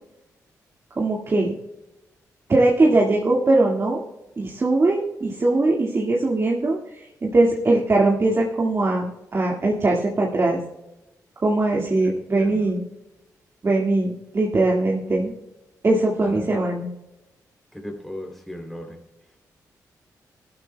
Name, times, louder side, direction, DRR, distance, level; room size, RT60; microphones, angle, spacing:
voice 1, 1.0-1.5 2.5-4.0 4.4-10.6 11.4-12.8 13.6-15.3 15.8-16.9, right 2 dB, 40° right, -2 dB, 2.0 m, -21 dB
voice 2, 12.0-12.7 16.2-16.5 17.7-19.4, equal, 5° left, 1 dB, 3.1 m, -38 dB
15.5 x 12.5 x 2.3 m, 0.98 s
cardioid pair, 65°, 7 cm